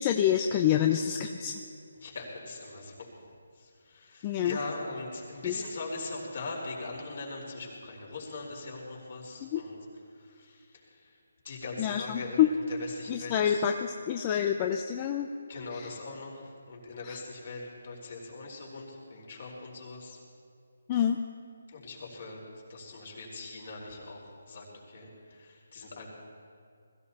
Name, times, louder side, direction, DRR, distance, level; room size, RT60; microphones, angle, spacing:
voice 1, 0.0-1.6 4.2-4.6 5.4-5.5 9.4-9.6 11.8-12.5 13.1-15.3 15.7-15.9 17.0-17.2 20.9-21.2, left 10 dB, 25° left, 5 dB, 0.6 m, -27 dB
voice 2, 2.0-3.1 3.5-9.8 10.1-13.6 15.5-20.2 21.7-22.4 22.7-26.0, left 3 dB, 55° left, -2 dB, 4.5 m, -41 dB
21.0 x 15.0 x 4.3 m, 2.4 s
figure-of-eight pair, 155°, 0 cm